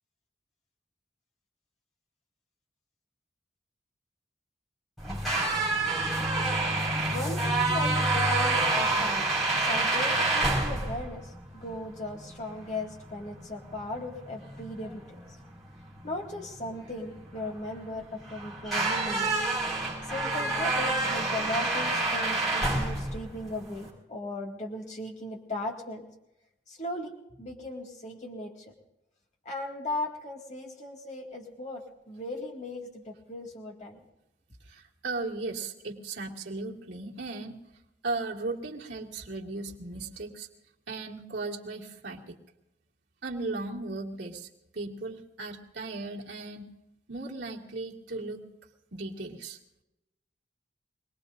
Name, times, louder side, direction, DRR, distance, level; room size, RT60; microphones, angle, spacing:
sound 1, 5.0-23.9, right 2 dB, ahead, 5.1 m, -28 dB
voice 1, 6.2-9.3 9.5-15.2 16.0-19.4 20.0-26.0 26.7-28.6 29.5-34.0, left 1 dB, 40° left, 0 dB, 2.2 m, -37 dB
voice 2, 34.7-37.6 38.0-40.5 40.9-42.4 43.2-44.5 44.7-46.7 47.1-48.4 48.9-49.6, right 3 dB, 90° right, -2 dB, 2.4 m, -36 dB
25.0 x 20.0 x 2.6 m, 0.90 s
head